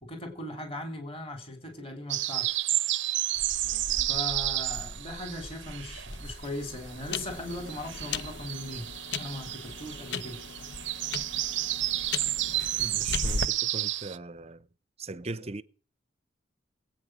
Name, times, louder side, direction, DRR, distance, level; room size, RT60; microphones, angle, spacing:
voice 1, 0.0-2.5 4.1-8.9 9.2-10.4, left 1 dB, 30° left, 3.3 m, -39 dB
sound 1, 2.1-6.4 6.7-14.2, right 15 dB, 70° right, 0.6 m, -31 dB
Child speech kid speaking, 3.3-8.6, equal, 45° left, 1.9 m, -45 dB
sound 2, 6.1-13.5, left 5 dB, 60° left, 0.6 m, -37 dB
voice 2, 12.8-14.7 15.0-15.6, right 2 dB, 30° right, 0.7 m, -39 dB
20.0 x 8.9 x 6.3 m
head